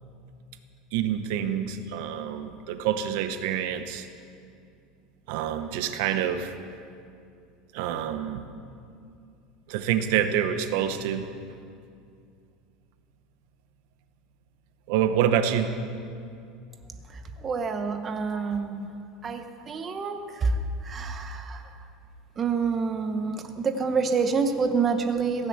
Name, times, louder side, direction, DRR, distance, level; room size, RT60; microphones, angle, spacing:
voice 1, 0.9-4.1 5.3-6.5 7.7-8.4 9.7-11.3 14.9-15.7, right 9 dB, 70° right, 9 dB, 1.0 m, -27 dB
voice 2, 17.1-18.9 19.2-21.7 22.4-25.5, right 5 dB, 25° right, 7 dB, 0.9 m, -28 dB
16.0 x 10.0 x 7.9 m, 2.4 s
supercardioid pair, 150°, 0 cm